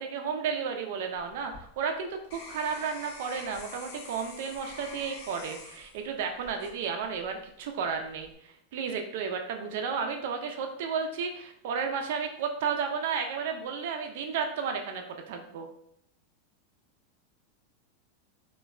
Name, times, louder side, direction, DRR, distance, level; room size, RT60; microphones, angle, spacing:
voice 1, 0.0-15.7, right 6 dB, 60° right, 4 dB, 0.3 m, -33 dB
sound 1, 1.1-7.4 7.9-8.3, left 3 dB, 60° left, 0.6 m, -47 dB
3.1 x 2.1 x 2.3 m, 0.71 s
supercardioid pair, 155°, 0 cm